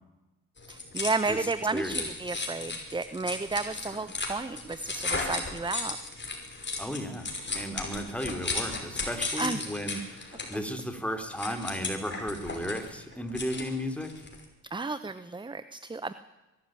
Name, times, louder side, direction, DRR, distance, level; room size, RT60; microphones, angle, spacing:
sound 1, 0.6-14.5, left 3 dB, 30° left, 5.7 m, -36 dB
voice 1, 0.7-6.0 9.4-9.6 14.7-16.1, right 3 dB, 15° right, 14 dB, 0.9 m, -32 dB
voice 2, 1.7-2.1 6.8-14.1, equal, 5° left, 6 dB, 3.7 m, -34 dB
22.5 x 13.5 x 9.1 m, 1.1 s
supercardioid pair, 60°, 37 cm